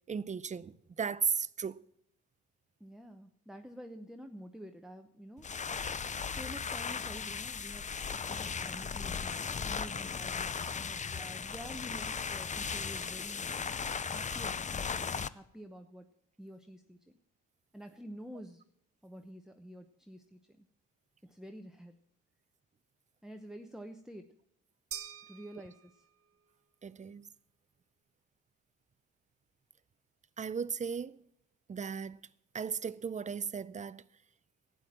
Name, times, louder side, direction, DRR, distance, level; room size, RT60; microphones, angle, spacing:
voice 1, 0.1-1.8 26.8-27.3 30.4-31.2 31.7-32.2 32.5-34.0, right 6 dB, 25° right, 0.5 m, -36 dB
voice 2, 2.8-5.5 6.2-16.1 16.4-17.1 17.7-18.7 19.0-20.7 21.2-21.9 23.2-24.3 25.3-26.0, equal, ahead, 0.8 m, -49 dB
sound 1, 5.4-15.3, left 6 dB, 25° left, 0.5 m, -37 dB
sound 2, 24.9-26.4, right 9 dB, 50° right, 0.9 m, -46 dB
12.0 x 9.3 x 7.4 m
cardioid pair, 90°, 30 cm